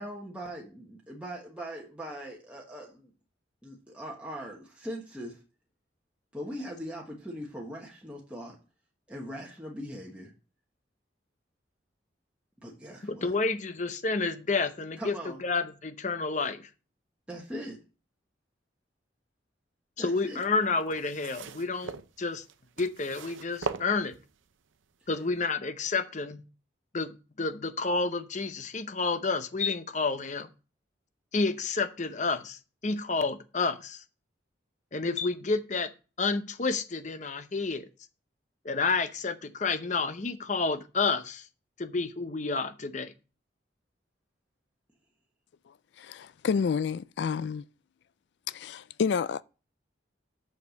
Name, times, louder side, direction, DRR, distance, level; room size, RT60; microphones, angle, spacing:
voice 1, 0.0-3.1 3.6-5.4 6.3-8.5 9.1-10.3 12.6-13.3 15.0-15.4 17.3-17.8 20.0-20.4 25.0-25.1, equal, 5° right, 1.3 m, -40 dB
voice 2, 13.0-16.7 20.0-22.4 22.8-24.2 25.1-26.4 26.9-30.5 31.3-34.0 34.9-35.9 36.2-37.9 38.6-41.5 41.8-43.1, left 4 dB, 40° left, 0.7 m, -30 dB
sound 1, 20.3-24.5 25.3-25.4, right 5 dB, 90° right, 0.6 m, -40 dB
voice 3, 46.0-47.6 48.5-49.4, left 6 dB, 65° left, 0.3 m, -29 dB
6.7 x 5.8 x 6.3 m
head